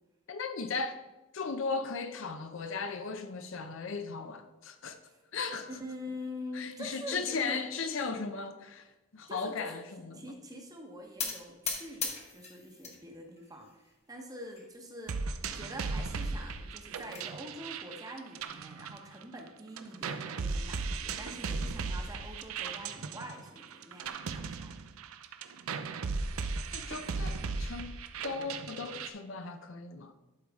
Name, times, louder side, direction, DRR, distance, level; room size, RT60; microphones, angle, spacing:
voice 1, 0.3-1.0 1.3-5.0 5.3-5.7 6.5-10.3 26.7-28.0 28.2-30.2, left 4 dB, 60° left, 0.6 m, -37 dB
voice 2, 5.7-7.6 9.3-9.8 10.1-24.7, equal, 15° right, 1.0 m, -45 dB
sound 1, 11.2-13.0 13.4-14.0 14.5-14.7 14.9-15.0 15.4-15.5 16.6-17.3, left 5 dB, 30° left, 1.1 m, -38 dB
sound 2, 15.1-19.5 19.8-29.1, right 4 dB, 75° right, 0.5 m, -37 dB
11.5 x 4.7 x 3.6 m
head